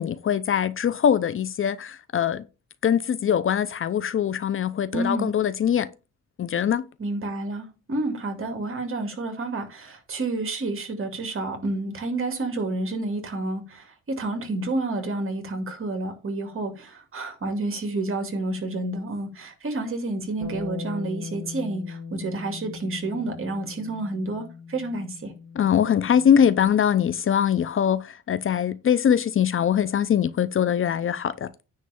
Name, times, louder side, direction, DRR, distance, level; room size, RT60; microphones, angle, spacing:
voice 1, 0.0-2.4 2.8-5.9 6.4-6.9 25.6-31.5, left 8 dB, 45° left, 0.6 m, -22 dB
voice 2, 4.9-5.3 7.0-25.3, right 2 dB, 45° right, 2.4 m, -30 dB
Bass guitar, 20.4-26.7, left 4 dB, 65° right, 4.0 m, -39 dB
9.6 x 3.3 x 6.9 m
cardioid pair, 90°, 30 cm